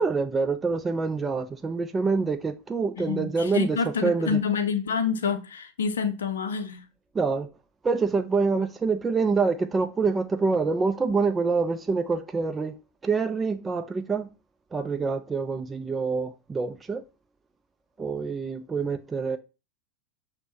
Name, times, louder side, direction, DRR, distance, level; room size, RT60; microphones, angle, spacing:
voice 1, 0.0-3.8 4.0-4.4 7.1-7.5 7.8-12.8 13.0-14.3 14.7-17.0 18.0-19.4, right 4 dB, 20° right, 0.4 m, -26 dB
voice 2, 3.0-6.8, left 6 dB, 75° left, 0.5 m, -28 dB
6.1 x 2.1 x 2.7 m
figure-of-eight pair, 90°, 0 cm